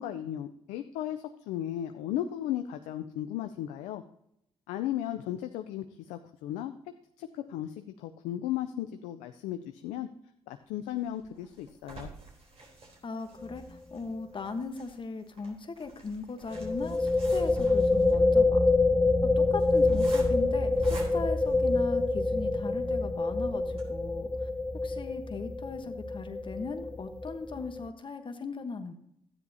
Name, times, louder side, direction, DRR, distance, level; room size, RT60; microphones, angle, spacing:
voice 1, 0.0-4.0 4.7-6.7 7.2-10.1 10.5-12.1, left 12 dB, 80° left, 8 dB, 0.5 m, -35 dB
sound 1, 10.9-22.3 22.8-22.9 23.2-23.3 23.7-23.8, right 3 dB, 55° right, 3.5 m, -48 dB
voice 2, 13.0-18.7 19.2-24.5 24.8-28.9, left 4 dB, 45° left, 7 dB, 1.2 m, -38 dB
sound 2, 13.4-13.7 13.9-14.0 16.5-27.9, left 3 dB, 10° left, 0.8 m, -26 dB
12.5 x 9.7 x 2.8 m, 0.75 s
hypercardioid pair, 45°, 12 cm